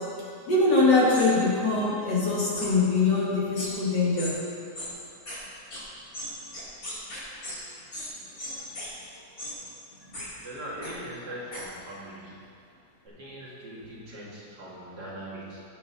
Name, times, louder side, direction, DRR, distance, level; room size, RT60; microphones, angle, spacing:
voice 1, 0.5-4.3, left 3 dB, 80° left, -6 dB, 2.9 m, -23 dB
sound 1, 1.1-1.3 2.5-2.7 3.6-3.7 4.2-4.3 4.7-4.9 5.3-5.4 5.7-5.8 6.1-7.6 7.9-8.1 8.4-8.9 9.4-9.5 10.1-10.3 10.8-10.9 11.5-11.6, left 1 dB, 55° left, 3.3 m, -36 dB
voice 2, 10.4-12.4 13.0-15.6, right 1 dB, 75° right, -6 dB, 2.8 m, -41 dB
15.5 x 6.5 x 4.1 m, 2.4 s
omnidirectional pair, 1.8 m